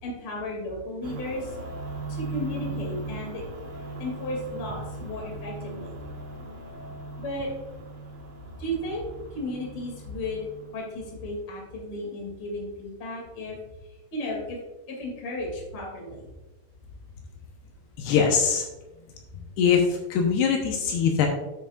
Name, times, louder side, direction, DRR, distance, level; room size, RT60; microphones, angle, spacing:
voice 1, 0.0-1.5 2.1-3.4 4.0-5.9 7.2-7.5 8.6-9.0 9.3-10.5 10.7-13.6 14.1-14.6 14.9-16.3, left 1 dB, 35° left, -1 dB, 2.3 m, -34 dB
sound 1, 1.0-11.3, right 2 dB, 70° right, 1.5 m, -38 dB
voice 2, 18.0-18.6 19.6-21.3, left 6 dB, 75° left, 2 dB, 2.8 m, -22 dB
9.7 x 8.5 x 2.4 m, 1.1 s
omnidirectional pair, 4.8 m